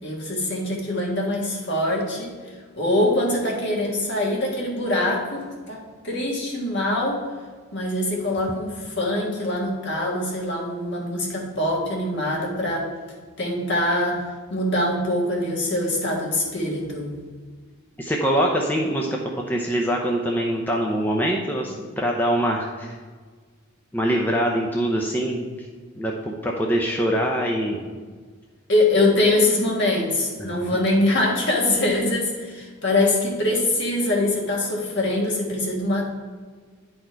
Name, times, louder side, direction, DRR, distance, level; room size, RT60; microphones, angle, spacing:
voice 1, 0.0-2.4 2.8-7.2 7.7-12.9 13.4-14.2 14.5-17.1 28.7-36.1, left 1 dB, 55° left, -1 dB, 1.7 m, -23 dB
voice 2, 18.0-19.2 19.5-23.0 23.9-25.7 26.0-27.8 30.4-30.5, equal, 10° left, -1 dB, 0.6 m, -24 dB
10.0 x 4.3 x 4.5 m, 1.5 s
head